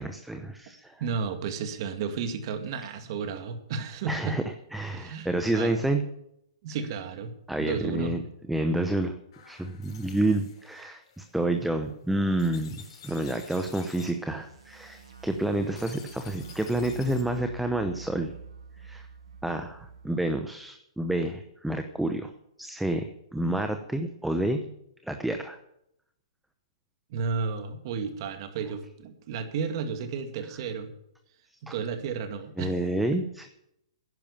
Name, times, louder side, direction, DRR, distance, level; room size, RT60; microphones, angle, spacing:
voice 1, 0.0-0.9 4.1-4.4 4.7-6.0 7.5-8.2 8.5-9.2 9.4-18.3 18.8-19.1 19.4-22.3 22.6-24.7 25.0-25.6 31.7-31.8 32.6-33.5, right 1 dB, 5° right, 6 dB, 0.8 m, -29 dB
voice 2, 1.0-4.4 4.9-5.8 6.6-7.3 7.6-8.1 27.1-30.9 31.7-32.8, right 5 dB, 45° right, 7 dB, 2.1 m, -32 dB
sound 1, 9.3-17.4, left 6 dB, 55° left, 5.0 m, -51 dB
sound 2, 14.1-20.4, right 6 dB, 75° right, 1.7 m, -46 dB
11.0 x 10.5 x 7.2 m, 0.77 s
hypercardioid pair, 145°, 3 cm